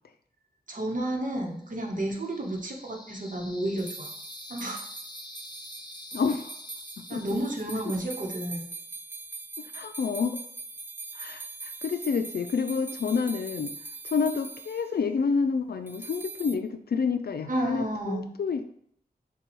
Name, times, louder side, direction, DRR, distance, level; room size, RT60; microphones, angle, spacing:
voice 1, 0.7-4.1 4.5-4.8 7.1-8.7 17.5-18.3, right 1 dB, 50° right, 0 dB, 1.0 m, -31 dB
sound 1, 1.6-8.6, left 2 dB, 25° left, 0.7 m, -47 dB
sound 2, 3.8-14.9 15.9-16.6, right 3 dB, 10° right, 0.3 m, -42 dB
voice 2, 6.1-6.5 7.0-7.2 9.7-10.4 11.1-13.7 14.0-18.8, left 5 dB, 70° left, 8 dB, 0.4 m, -29 dB
6.7 x 2.3 x 3.1 m, 0.66 s
wide cardioid pair, 75°, 17 cm